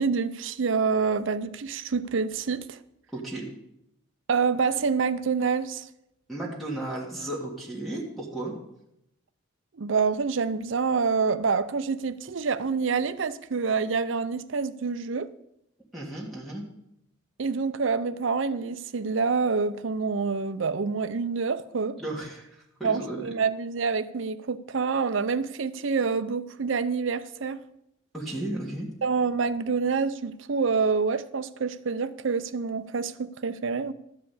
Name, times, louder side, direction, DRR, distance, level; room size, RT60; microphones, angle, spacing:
voice 1, 0.0-2.8 4.3-5.9 9.7-15.3 17.4-22.0 22.8-27.6 29.0-33.9, right 5 dB, 70° right, 0.6 m, -27 dB
voice 2, 3.1-3.4 6.3-8.6 15.9-16.6 22.0-22.5 22.8-23.3 28.1-28.9, right 1 dB, ahead, 1.8 m, -34 dB
13.0 x 4.9 x 8.3 m
head